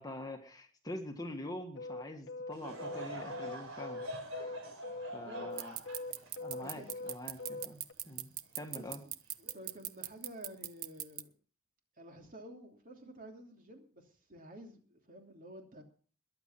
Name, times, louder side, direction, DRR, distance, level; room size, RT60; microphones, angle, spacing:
voice 1, 0.0-4.0 4.3-4.5 5.1-5.8 6.4-9.0, left 1 dB, 15° left, 4 dB, 1.6 m, -45 dB
sound 1, 1.8-7.9, left 3 dB, 55° left, 1.0 m, -42 dB
Laughter / Crowd, 2.5-8.0 8.5-8.6 9.4-9.7, equal, 60° right, 4.9 m, -45 dB
voice 2, 5.1-5.7 6.5-7.1 8.7-8.9 9.4-11.3 12.0-15.8, equal, 40° right, 3 dB, 2.9 m, -51 dB
Fast Ticking Slowing Down, 5.6-11.2, right 15 dB, 85° right, 0.9 m, -38 dB
21.5 x 8.1 x 5.8 m, 0.42 s
head